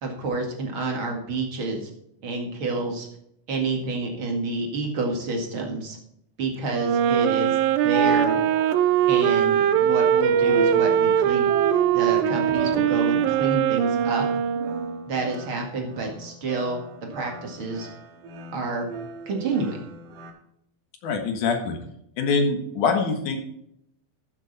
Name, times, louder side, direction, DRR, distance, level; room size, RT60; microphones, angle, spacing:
voice 1, 0.0-1.9 2.2-3.1 3.5-6.0 6.4-8.4 9.1-14.3 15.1-16.8 17.1-17.9 18.5-18.9 19.3-19.8, right 3 dB, 40° right, 1 dB, 2.4 m, -29 dB
Wind instrument woodwind instrument, 6.7-15.1, right 9 dB, 90° right, 2.4 m, -21 dB
sound 1, 7.7-20.3, right 4 dB, 70° right, 3.1 m, -35 dB
voice 2, 21.0-21.8 22.2-23.4, left 4 dB, 65° left, 4 dB, 2.8 m, -24 dB
14.0 x 7.4 x 4.2 m, 0.75 s
omnidirectional pair, 4.1 m